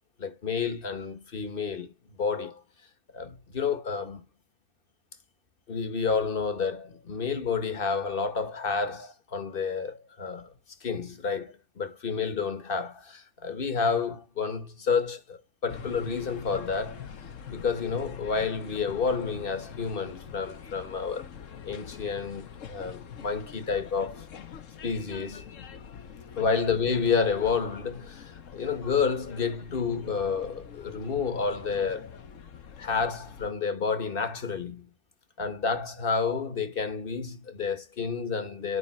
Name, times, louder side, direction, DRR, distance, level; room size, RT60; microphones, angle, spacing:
voice 1, 0.2-1.9 2.2-2.6 3.1-4.3 5.7-10.5 10.8-17.1 17.5-21.3 21.7-24.2 24.8-25.4 26.3-32.1 32.8-34.9 35.4-38.8, left 5 dB, 40° left, 1.3 m, -30 dB
sound 1, 15.7-33.5, left 7 dB, 65° left, 1.3 m, -44 dB
9.7 x 5.3 x 4.4 m
omnidirectional pair, 1.5 m